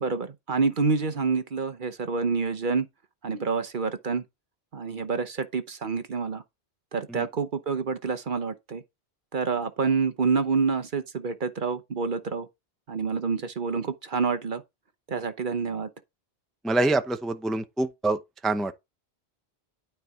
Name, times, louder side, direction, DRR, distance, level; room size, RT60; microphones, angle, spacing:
voice 1, 0.0-2.9 3.2-4.2 4.7-6.4 6.9-8.8 9.3-12.5 12.9-14.6 15.1-15.9, right 5 dB, 50° right, 1.0 m, -27 dB
voice 2, 16.6-18.2 18.4-18.7, right 2 dB, ahead, 0.6 m, -25 dB
12.0 x 4.7 x 3.6 m
omnidirectional pair, 1.1 m